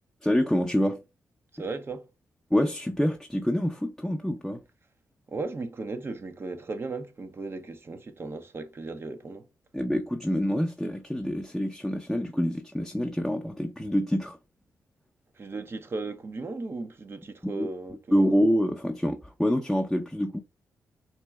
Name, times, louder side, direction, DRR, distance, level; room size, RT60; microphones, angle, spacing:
voice 1, 0.2-1.0 2.5-4.6 9.7-14.4 17.4-17.7 18.1-20.4, equal, 5° left, 0.5 m, -26 dB
voice 2, 1.6-2.1 5.3-9.5 15.4-18.0, right 3 dB, 40° right, 0.7 m, -36 dB
4.2 x 2.2 x 3.4 m
cardioid pair, 70°, 6 cm